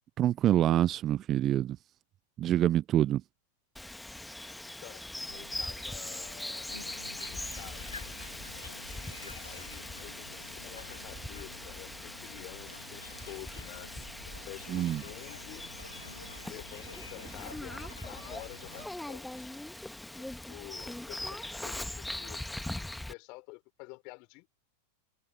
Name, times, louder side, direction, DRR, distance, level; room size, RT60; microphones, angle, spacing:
voice 1, 0.2-1.8 2.4-3.2 14.7-15.0, right 12 dB, 30° right, 0.3 m, -26 dB
Bird vocalization bird call bird song, 3.8-23.1, left 1 dB, 5° left, 1.6 m, -41 dB
voice 2, 4.6-6.7 7.0-8.0 9.2-13.9 14.5-15.7 16.5-19.6 20.1-22.4 22.8-24.5, left 30 dB, 45° left, 3.6 m, -50 dB
sound 1, 5.3-16.4, right 12 dB, 60° right, 2.9 m, -60 dB
sound 2, 6.7-18.9, left 4 dB, 80° left, 1.6 m, -49 dB
figure-of-eight pair, 90°, 0 cm